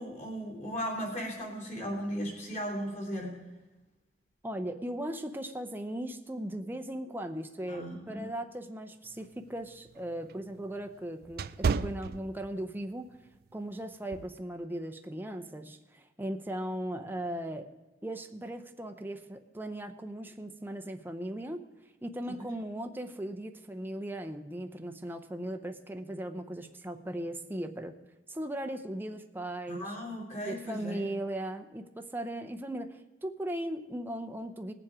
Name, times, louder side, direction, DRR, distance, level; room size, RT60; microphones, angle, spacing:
voice 1, 0.0-3.4 7.7-8.3 29.7-31.0, equal, 40° left, -1 dB, 3.6 m, -36 dB
voice 2, 4.4-13.2 13.5-17.7 18.0-21.6 22.0-28.0 28.3-30.0 30.4-34.7, right 1 dB, 10° right, 6 dB, 0.6 m, -38 dB
sound 1, 9.1-12.8 13.3-13.5 14.1-14.4, right 5 dB, 55° right, 0.4 m, -33 dB
19.5 x 7.3 x 4.9 m, 1.1 s
head